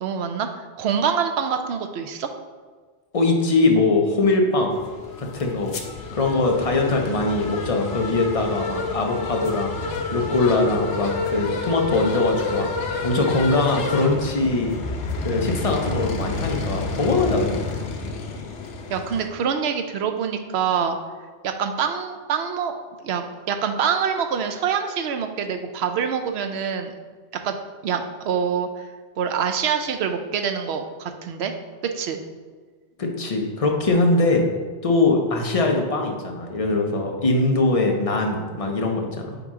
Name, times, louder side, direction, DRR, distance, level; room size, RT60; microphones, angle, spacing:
voice 1, 0.0-2.3 18.9-21.0 21.4-26.9 27.4-27.5 27.8-28.7 29.2-31.5 31.9-32.2, right 7 dB, 70° right, 6 dB, 0.8 m, -25 dB
voice 2, 3.1-4.8 5.2-5.7 6.1-9.8 10.1-12.7 13.0-14.7 15.2-17.6 33.0-34.4 34.8-39.4, left 2 dB, 35° left, 1 dB, 0.7 m, -22 dB
sound 1, 4.7-19.3, left 3 dB, 85° left, 1.0 m, -29 dB
8.8 x 3.0 x 3.6 m, 1.5 s
omnidirectional pair, 1.2 m